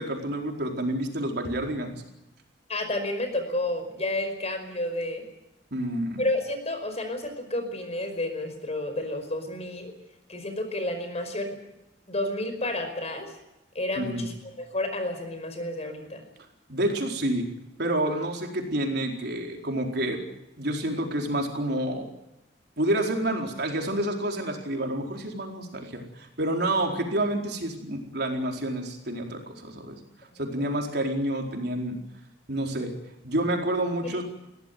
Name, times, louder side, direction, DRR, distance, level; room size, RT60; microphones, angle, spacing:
voice 1, 0.0-2.0 5.7-6.2 14.0-14.3 16.7-17.5 17.8-20.2 20.6-22.1 22.8-30.0 30.4-32.0 32.5-32.9 33.2-34.2, right 1 dB, 65° right, 2 dB, 4.4 m, -28 dB
voice 2, 2.7-5.2 6.2-9.9 10.3-11.6 12.1-13.3 13.7-16.2 30.3-30.7 34.0-34.2, left 1 dB, 35° left, 7 dB, 5.1 m, -31 dB
22.0 x 17.0 x 9.4 m, 0.90 s
head